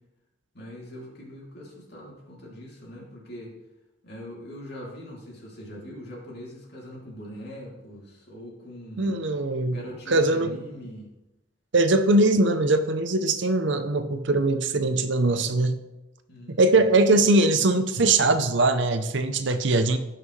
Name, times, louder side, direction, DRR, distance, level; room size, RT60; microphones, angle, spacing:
voice 1, 0.5-3.5 4.0-9.1 9.7-11.1 16.3-16.8, equal, 50° left, -3 dB, 2.9 m, -42 dB
voice 2, 9.0-9.8 10.1-10.5 11.7-15.8 16.5-20.0, right 2 dB, 60° right, 9 dB, 0.6 m, -21 dB
16.5 x 5.9 x 3.2 m, 1.0 s
head